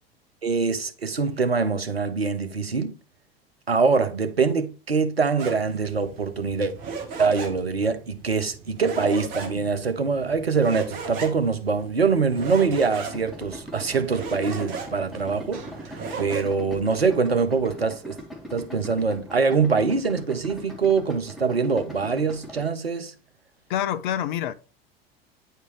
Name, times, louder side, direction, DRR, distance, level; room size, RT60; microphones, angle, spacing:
voice 1, 0.4-2.9 3.7-6.7 7.2-18.2 18.5-23.1, right 5 dB, 85° right, 0.8 m, -24 dB
sound 1, 5.4-16.4, right 5 dB, 50° right, 1.5 m, -37 dB
Idling, 13.1-22.7, equal, ahead, 2.3 m, -41 dB
voice 2, 23.7-24.5, left 10 dB, 55° left, 0.6 m, -26 dB
9.4 x 4.5 x 3.2 m
figure-of-eight pair, 75°, 30 cm